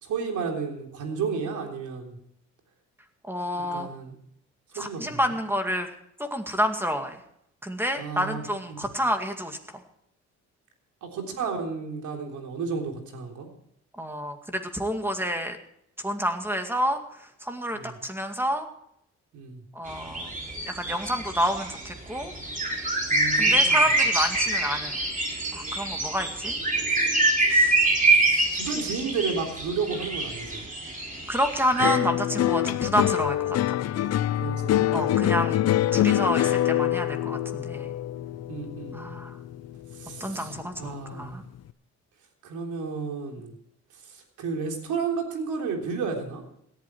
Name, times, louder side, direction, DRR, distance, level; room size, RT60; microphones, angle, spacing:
voice 1, 0.0-2.2 3.5-4.2 4.7-5.2 8.0-8.4 8.7-8.9 11.0-13.5 17.7-18.0 19.3-19.6 23.1-23.8 27.9-30.6 34.4-35.4 38.5-39.0 39.9-41.4 42.4-43.5 44.0-46.4, right 5 dB, 80° right, 2 dB, 3.6 m, -32 dB
voice 2, 3.3-3.9 4.7-5.9 6.2-7.2 7.6-9.6 14.0-15.6 16.0-18.7 19.7-20.3 20.7-22.3 23.3-25.0 25.5-26.5 27.5-27.8 31.3-33.6 34.9-35.6 35.9-37.9 38.9-39.4 40.2-41.4, equal, 5° right, 5 dB, 2.1 m, -29 dB
sound 1, 19.9-31.9, right 2 dB, 25° right, 4.1 m, -25 dB
sound 2, 31.8-40.3 40.6-41.2, left 12 dB, 55° left, 0.6 m, -25 dB
17.5 x 11.5 x 4.6 m, 0.74 s
cardioid pair, 90°, 30 cm